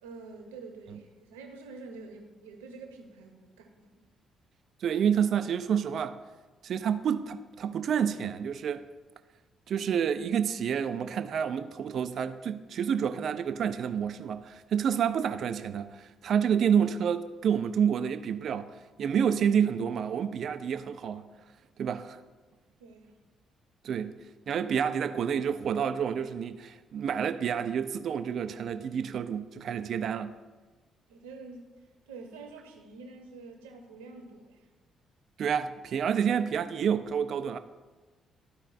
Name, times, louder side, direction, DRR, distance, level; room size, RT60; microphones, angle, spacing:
voice 1, 0.0-3.9 22.8-23.2 31.1-31.8 32.1-34.7, right 3 dB, 75° right, 0.9 m, -47 dB
voice 2, 4.8-6.2 6.6-8.8 9.7-18.7 19.0-21.3 21.8-22.2 23.8-24.1 24.5-30.3 35.4-37.6, right 8 dB, 55° right, 0.4 m, -29 dB
13.5 x 4.9 x 2.5 m
figure-of-eight pair, 45°, 0 cm